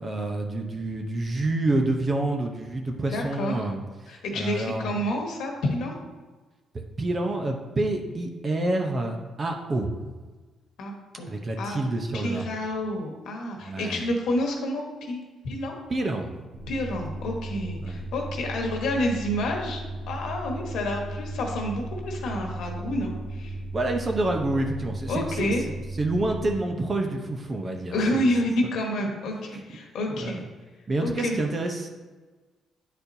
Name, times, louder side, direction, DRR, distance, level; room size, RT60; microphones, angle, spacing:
voice 1, 0.0-5.0 6.7-10.0 11.3-12.5 13.6-14.1 15.9-16.3 17.8-18.0 23.7-25.5 26.0-28.3 29.5-29.6 30.1-30.4 30.9-31.9, right 2 dB, 35° right, 3 dB, 0.8 m, -28 dB
voice 2, 3.1-3.6 4.1-5.9 10.8-11.8 12.1-15.7 16.7-19.8 20.1-23.6 25.1-25.6 27.9-30.4 31.0-31.4, left 1 dB, 75° left, 1 dB, 1.3 m, -29 dB
sound 1, 16.5-26.5, right 2 dB, 85° right, 1.1 m, -36 dB
9.9 x 4.3 x 2.7 m, 1.3 s
cardioid pair, 105°, 0 cm